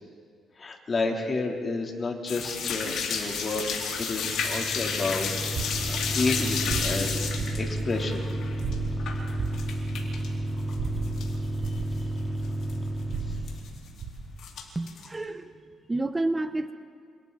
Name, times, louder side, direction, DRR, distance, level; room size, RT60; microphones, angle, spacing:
voice 1, 0.6-3.6 4.0-8.3, left 3 dB, 40° left, 1 dB, 3.4 m, -31 dB
sound 1, 2.3-10.3 10.6-11.3 11.6-11.7 12.2-12.3 12.4-12.7 13.5-14.0 14.4-15.1, left 6 dB, 75° left, 4.1 m, -32 dB
sound 2, 3.9-13.8, right 1 dB, ahead, 2.2 m, -32 dB
sound 3, 5.4-14.3, right 4 dB, 65° right, 4.4 m, -37 dB
voice 2, 14.7-15.5 15.9-16.7, right 2 dB, 20° right, 9 dB, 0.9 m, -29 dB
28.0 x 28.0 x 4.2 m, 2.1 s
cardioid pair, 90°, 0 cm